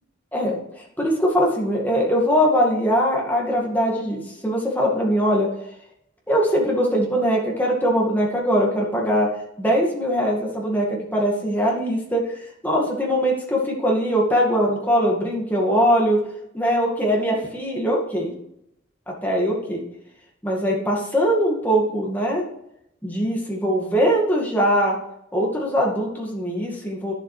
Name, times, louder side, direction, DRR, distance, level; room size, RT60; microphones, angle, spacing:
voice 1, 1.0-5.5 6.3-9.3 9.6-12.2 12.6-16.2 16.5-18.3 19.2-19.8 20.4-22.4 23.0-24.9 25.3-27.1, equal, 10° left, -2 dB, 2.0 m, -21 dB
11.5 x 7.1 x 3.3 m, 0.79 s
head